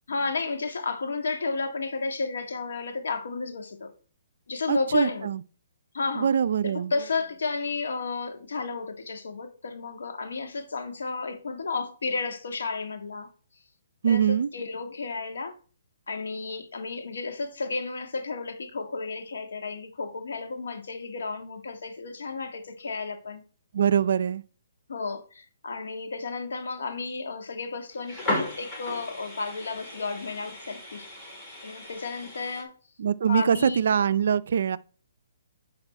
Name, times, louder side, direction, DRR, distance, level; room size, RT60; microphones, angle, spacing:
voice 1, 0.1-3.9 4.5-5.3 5.9-6.3 6.6-13.3 14.1-15.5 16.1-23.4 24.9-31.1 31.6-32.7 33.3-33.8, left 4 dB, 80° left, 1.9 m, -32 dB
voice 2, 4.7-5.4 6.1-6.9 14.0-14.5 23.7-24.4 33.0-34.8, right 7 dB, 60° right, 0.5 m, -23 dB
sound 1, 27.9-32.6, left 1 dB, 15° left, 2.2 m, -35 dB
10.5 x 4.2 x 4.4 m
hypercardioid pair, 165°, 0 cm